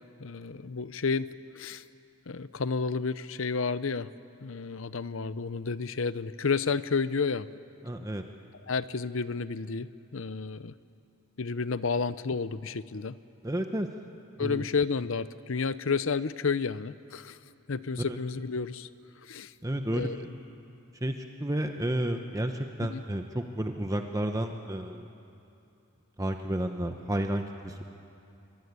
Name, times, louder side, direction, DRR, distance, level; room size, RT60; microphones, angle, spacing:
voice 1, 0.0-1.8 2.3-4.1 4.4-7.5 8.7-10.7 11.4-13.1 14.4-17.4 17.7-18.9 19.2-19.5 19.9-20.2 22.8-23.0, left 5 dB, 65° left, 15 dB, 0.7 m, -31 dB
voice 2, 7.8-8.2 13.4-13.9 14.4-14.7 18.0-18.2 19.6-20.3 21.0-25.1 26.2-27.8, right 1 dB, 15° right, 5 dB, 0.9 m, -31 dB
24.5 x 24.0 x 9.6 m, 2.7 s
head